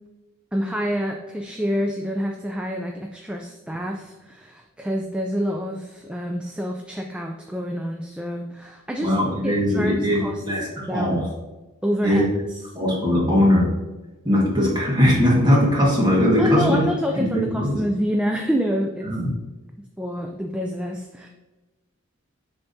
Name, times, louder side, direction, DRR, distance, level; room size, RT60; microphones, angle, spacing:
voice 1, 0.5-9.1 9.4-10.4 10.9-11.3 11.8-12.2 16.4-19.1 20.0-21.3, equal, 5° right, 2 dB, 0.3 m, -27 dB
voice 2, 9.0-11.3 12.0-12.2 12.7-13.7 14.2-16.8 17.2-17.8 19.0-19.3, left 1 dB, 20° right, -4 dB, 1.6 m, -20 dB
10.0 x 3.5 x 2.7 m, 1.1 s
head